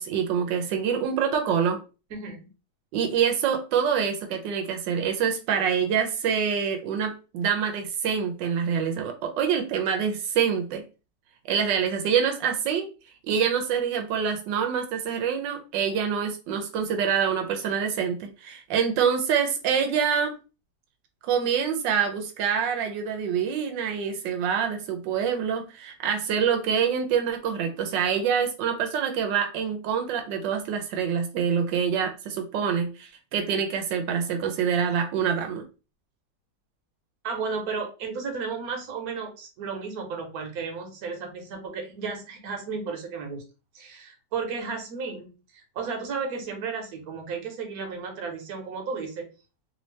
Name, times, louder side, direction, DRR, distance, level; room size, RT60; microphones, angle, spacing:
voice 1, 0.0-1.8 2.9-10.8 11.5-12.9 13.3-20.4 21.2-35.6, right 7 dB, 90° right, 5 dB, 1.3 m, -26 dB
voice 2, 2.1-2.5 37.2-43.4 43.7-45.3 45.5-49.3, right 5 dB, 60° right, 2 dB, 1.4 m, -33 dB
3.3 x 2.7 x 3.1 m, 0.32 s
omnidirectional pair, 1.9 m